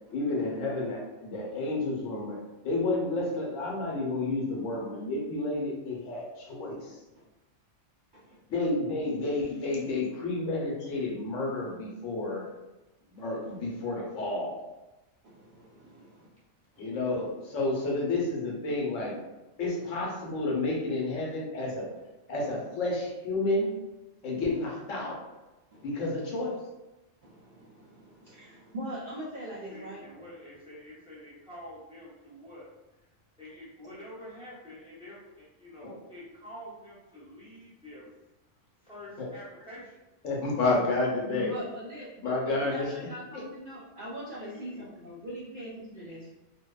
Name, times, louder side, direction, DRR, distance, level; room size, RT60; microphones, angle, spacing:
voice 1, 0.1-7.0 8.5-12.5 13.1-14.6 16.8-19.2 19.6-21.9 22.3-23.7 24.2-25.2 25.8-26.6 35.8-35.9 39.2-39.3 40.2-41.5 42.2-42.9, left 2 dB, 80° left, -2 dB, 1.0 m, -30 dB
voice 2, 8.2-8.6 15.8-16.4 29.7-32.7 33.0-38.1 38.8-40.0 44.4-44.9, left 1 dB, 5° right, -9 dB, 0.6 m, -48 dB
voice 3, 15.2-16.3 19.7-19.8 24.2-24.4 25.7-25.9 27.2-30.0 41.3-46.3, equal, 60° right, -7 dB, 0.5 m, -42 dB
2.7 x 2.1 x 2.2 m, 1.0 s
omnidirectional pair, 1.3 m